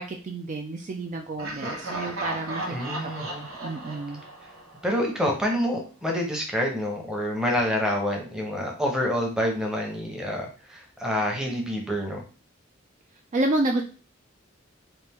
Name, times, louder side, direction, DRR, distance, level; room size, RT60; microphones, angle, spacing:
voice 1, 0.0-4.2 13.3-13.8, right 2 dB, 35° right, 3 dB, 0.4 m, -30 dB
Laughter, 1.4-5.3, right 1 dB, 85° right, 1.0 m, -35 dB
voice 2, 2.7-3.3 4.8-12.2, equal, 5° right, 0 dB, 0.8 m, -27 dB
4.3 x 2.5 x 3.5 m, 0.37 s
head